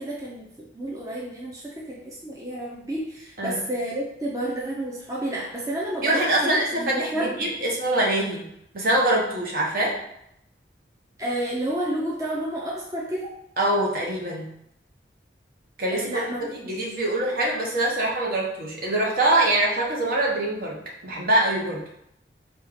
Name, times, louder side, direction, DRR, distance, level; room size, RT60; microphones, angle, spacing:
voice 1, 0.0-7.6 11.2-13.3 15.9-16.7, right 1 dB, 20° right, -5 dB, 0.6 m, -30 dB
voice 2, 6.0-8.5 8.7-10.0 13.6-14.5 15.8-16.1 16.5-21.9, right 1 dB, 50° right, -3 dB, 1.0 m, -24 dB
4.4 x 2.4 x 4.8 m, 0.77 s
head